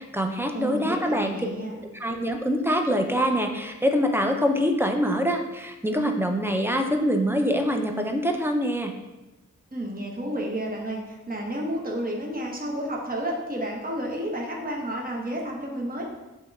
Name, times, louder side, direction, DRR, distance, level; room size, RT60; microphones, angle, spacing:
voice 1, 0.0-1.4 2.0-8.9, equal, 10° right, 4 dB, 0.5 m, -24 dB
voice 2, 0.5-1.8 9.7-16.0, right 1 dB, 30° right, -1 dB, 1.0 m, -31 dB
7.6 x 2.9 x 2.3 m, 1.0 s
wide cardioid pair, 50°, 31 cm